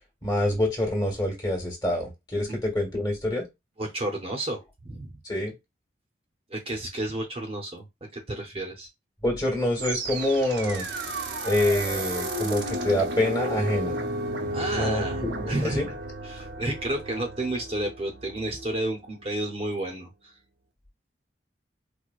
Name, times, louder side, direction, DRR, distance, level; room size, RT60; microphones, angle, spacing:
voice 1, 0.2-3.4 5.2-5.5 9.2-10.9 11.4-14.0 14.7-15.9, left 1 dB, 25° left, 1.3 m, -26 dB
voice 2, 3.8-5.2 6.5-8.9 14.5-15.8 16.2-20.4, right 1 dB, 30° right, 0.6 m, -31 dB
sound 1, 9.8-18.9, right 1 dB, 80° right, 0.7 m, -33 dB
4.5 x 2.1 x 2.4 m
head